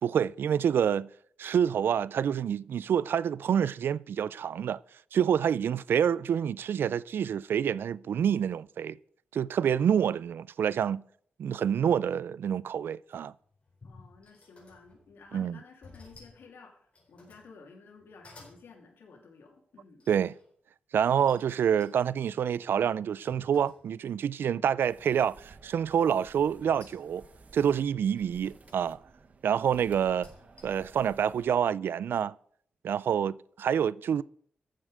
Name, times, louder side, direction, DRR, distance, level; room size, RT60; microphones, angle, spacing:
voice 1, 0.0-1.1 1.4-4.8 5.1-9.0 9.3-11.0 11.4-13.3 15.3-15.6 20.1-20.3 20.9-27.2 27.5-29.0 29.4-30.3 30.6-32.4 32.8-34.2, right 8 dB, 70° right, 0.3 m, -27 dB
sound 1, 13.4-15.3 15.8-16.4 16.8-17.5 17.9-18.6 20.0-20.5 21.3-24.2 24.5-25.0 26.4-27.4 28.1-28.8 30.0-30.9, left 3 dB, 30° left, 4.9 m, -56 dB
voice 2, 13.8-20.0, left 4 dB, 75° left, 2.8 m, -53 dB
sound 2, 24.8-31.6, right 4 dB, 40° right, 1.0 m, -54 dB
14.5 x 7.6 x 5.0 m
wide cardioid pair, 150°, 4 cm